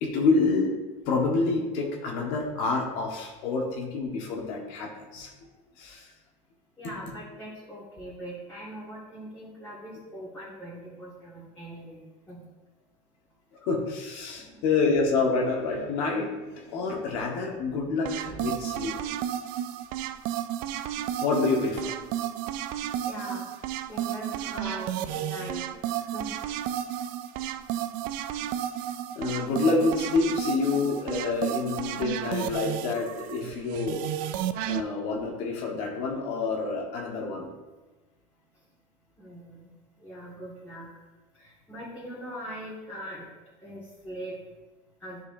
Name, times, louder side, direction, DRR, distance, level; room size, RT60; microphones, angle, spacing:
voice 1, 0.0-0.7 1.0-5.3 5.8-6.1 13.6-16.3 16.6-18.9 21.2-21.9 29.1-34.1 34.7-37.5, left 4 dB, 75° left, 0 dB, 1.4 m, -27 dB
voice 2, 6.8-12.4 14.2-14.6 18.2-18.5 23.1-26.3 38.5-38.6 39.2-40.9 41.3-43.3 43.6-44.4 45.0-45.2, equal, 15° left, -9 dB, 1.9 m, -41 dB
sound 1, 18.0-34.8, right 11 dB, 65° right, 0.4 m, -32 dB
10.0 x 4.7 x 2.6 m, 1.2 s
cardioid pair, 125°, 15 cm